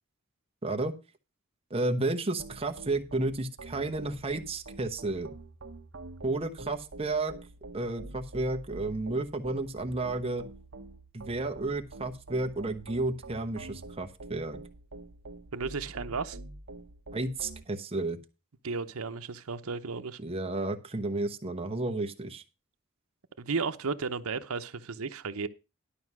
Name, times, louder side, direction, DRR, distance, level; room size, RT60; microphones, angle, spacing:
voice 1, 0.6-0.9 1.7-5.3 6.2-7.3 7.7-10.4 11.1-14.6 17.1-18.2 20.2-22.4, right 2 dB, 25° right, 1.0 m, -32 dB
sound 1, 2.4-17.6, right 2 dB, 60° right, 1.0 m, -46 dB
voice 2, 15.5-16.4 18.6-20.2 23.4-25.5, right 4 dB, 90° right, 0.8 m, -34 dB
11.5 x 5.5 x 6.1 m
head